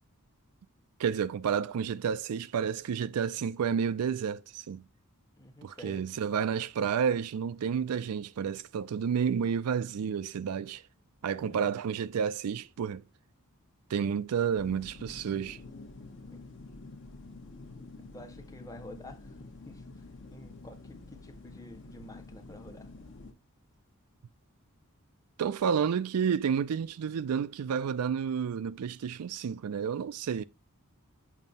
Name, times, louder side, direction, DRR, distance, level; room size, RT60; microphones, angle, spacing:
voice 1, 1.0-4.8 5.6-10.8 11.2-13.0 13.9-15.6 25.4-30.4, right 7 dB, 90° right, 0.4 m, -30 dB
voice 2, 5.3-6.1 11.4-11.7 16.3-16.5 18.1-19.8 20.3-22.9, left 1 dB, 15° left, 0.7 m, -49 dB
sound 1, 14.6-23.3, left 3 dB, 55° left, 0.9 m, -48 dB
7.3 x 2.7 x 5.3 m
head